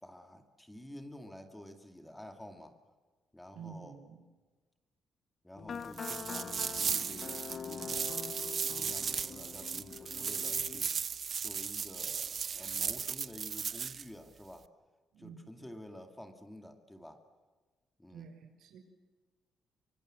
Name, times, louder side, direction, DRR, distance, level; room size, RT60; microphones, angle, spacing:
voice 1, 0.0-2.8 3.3-4.0 5.4-8.1 8.7-10.9 11.4-14.7 15.2-17.2 18.0-18.3, equal, 5° left, 5 dB, 2.3 m, -50 dB
voice 2, 3.5-4.2 15.1-15.7 18.1-18.8, right 6 dB, 85° right, 6 dB, 5.7 m, -50 dB
sound 1, 5.6-10.8, left 7 dB, 45° left, 0.9 m, -44 dB
sound 2, 5.9-14.0, right 6 dB, 40° right, 0.7 m, -36 dB
25.0 x 25.0 x 7.7 m, 1.3 s
cardioid pair, 140°, 0 cm